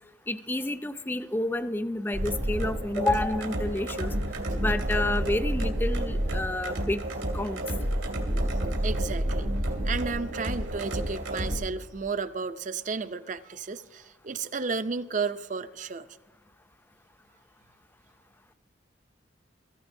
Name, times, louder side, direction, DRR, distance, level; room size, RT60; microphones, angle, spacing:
voice 1, 0.3-4.1 4.6-7.0 7.3-7.6, left 1 dB, 10° left, 0.4 m, -29 dB
sound 1, 2.1-11.6, right 1 dB, 85° right, 2.4 m, -29 dB
voice 2, 8.8-9.5 9.8-16.1, right 4 dB, 40° right, 0.5 m, -33 dB
22.5 x 14.5 x 2.7 m
head